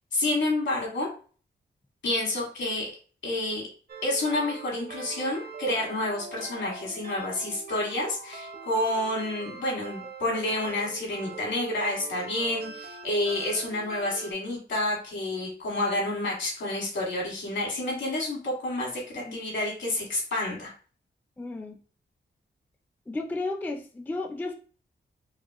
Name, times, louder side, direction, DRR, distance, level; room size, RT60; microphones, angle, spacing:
voice 1, 0.1-1.1 2.0-2.9 3.2-3.7 4.0-20.7, left 1 dB, 75° left, -2 dB, 2.1 m, -29 dB
sound 1, 3.9-14.3, right 5 dB, 50° right, 0.7 m, -42 dB
voice 2, 21.4-21.8 23.1-24.6, left 2 dB, 10° left, 4 dB, 0.4 m, -33 dB
4.8 x 2.4 x 2.9 m, 0.40 s
wide cardioid pair, 125°, 20 cm